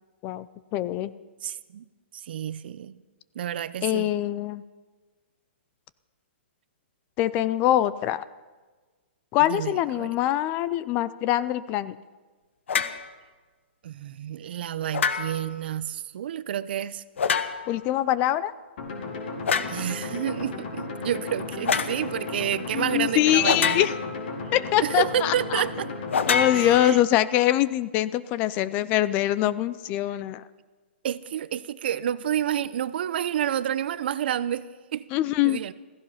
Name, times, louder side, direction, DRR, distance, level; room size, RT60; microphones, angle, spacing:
voice 1, 0.7-1.1 3.8-4.6 7.2-8.2 9.3-12.0 17.7-18.5 22.7-23.9 24.5-25.6 26.3-30.4 35.1-35.6, left 13 dB, 25° left, 0.4 m, -23 dB
voice 2, 1.4-1.8 2.1-3.0 3.3-4.1 9.4-10.1 13.8-17.0 19.7-23.9 24.8-25.9 26.5-27.0 31.0-35.0 35.4-35.7, right 10 dB, 55° right, 0.7 m, -29 dB
sound 1, 12.7-13.0 14.9-15.5 17.2-17.8 19.5-19.8 21.7-22.0 23.4-24.2 26.1-27.2, left 6 dB, 80° left, 1.1 m, -26 dB
sound 2, 18.8-26.8, left 3 dB, 55° left, 4.2 m, -35 dB
16.0 x 15.0 x 5.7 m
hypercardioid pair, 155°, 6 cm